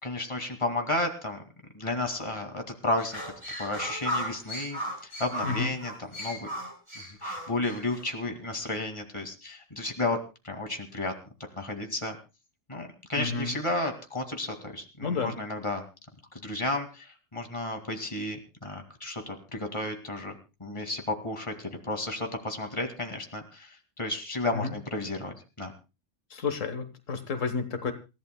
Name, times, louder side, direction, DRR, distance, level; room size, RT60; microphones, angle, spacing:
voice 1, 0.0-1.4 1.7-3.2 3.6-6.5 7.0-11.1 11.6-12.2 12.7-15.8 16.3-20.3 20.6-25.7, left 2 dB, 25° left, 4 dB, 2.3 m, -33 dB
sound 1, 3.0-8.0, equal, 20° right, 7.6 m, -36 dB
voice 2, 5.4-5.7 13.2-13.5 15.0-15.3 24.5-24.7 26.3-27.9, left 4 dB, 80° left, 9 dB, 1.7 m, -31 dB
28.0 x 15.0 x 2.2 m, 0.30 s
omnidirectional pair, 1.3 m